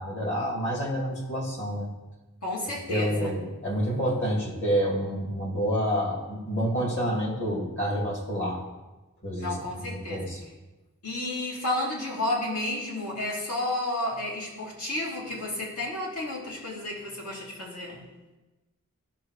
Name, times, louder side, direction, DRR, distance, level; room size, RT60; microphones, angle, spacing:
voice 1, 0.0-1.9 2.9-8.6 9.2-9.6 9.9-10.4, equal, 55° left, -2 dB, 2.5 m, -28 dB
voice 2, 2.4-3.4 9.4-10.3 11.0-18.0, left 1 dB, 80° left, -5 dB, 2.9 m, -31 dB
14.5 x 5.8 x 3.2 m, 1.1 s
head